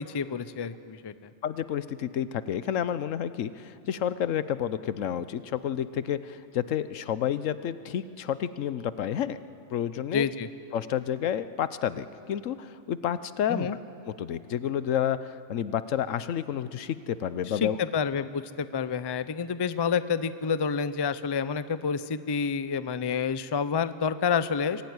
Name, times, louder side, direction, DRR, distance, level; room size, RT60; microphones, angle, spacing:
voice 1, 0.1-1.3 10.1-10.5 13.5-13.8 17.5-24.8, left 6 dB, 35° left, 14 dB, 0.4 m, -29 dB
voice 2, 1.4-9.4 9.7-10.3 10.7-13.7 14.2-17.8, left 9 dB, 85° left, 14 dB, 1.1 m, -30 dB
23.5 x 16.0 x 9.6 m, 2.5 s
omnidirectional pair, 1.3 m